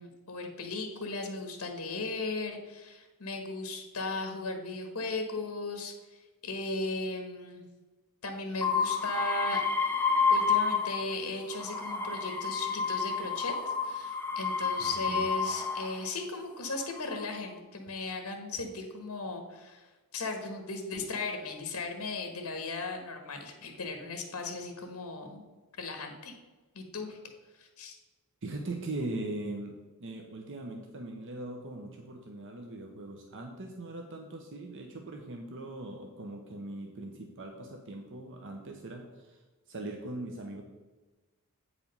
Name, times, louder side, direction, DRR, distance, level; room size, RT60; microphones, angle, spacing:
voice 1, 0.0-7.6 8.2-9.6 10.3-25.4 25.8-26.3 26.7-27.2 27.6-27.9, left 3 dB, 70° left, 5 dB, 1.3 m, -37 dB
sound 1, 8.6-11.1 11.5-16.1 16.8-17.4, left 5 dB, 10° left, 0.6 m, -30 dB
voice 2, 14.8-15.3 28.4-39.4 39.7-40.6, right 2 dB, 60° right, 3 dB, 0.8 m, -40 dB
8.4 x 5.0 x 5.3 m, 1.2 s
head